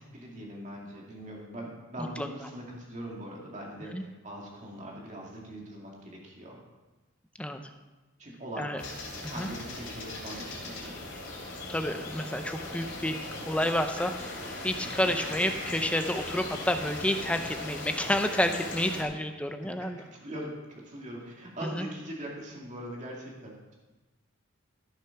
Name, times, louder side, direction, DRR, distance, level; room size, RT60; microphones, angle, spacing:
voice 1, 0.0-6.6 8.2-11.1 19.6-19.9 20.2-20.5 20.8-23.7, right 1 dB, 35° right, -2 dB, 2.4 m, -42 dB
sound 1, 8.8-19.0, left 2 dB, 55° left, 3.1 m, -39 dB
voice 2, 11.7-13.2 13.5-20.0 21.7-21.9, left 1 dB, 5° left, 6 dB, 0.6 m, -30 dB
13.5 x 6.8 x 5.9 m, 1.2 s
head